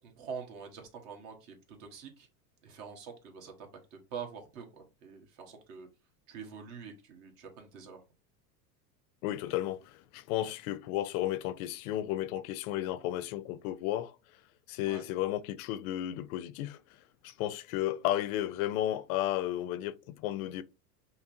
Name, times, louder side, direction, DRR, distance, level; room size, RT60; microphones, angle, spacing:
voice 1, 0.0-2.3 2.6-5.9 6.3-8.0 14.9-15.0, right 6 dB, 55° right, 1.4 m, -45 dB
voice 2, 9.2-14.2 14.7-16.8 17.2-20.6, left 13 dB, 60° left, 0.5 m, -33 dB
5.6 x 2.0 x 2.7 m
hypercardioid pair, 105°, 49 cm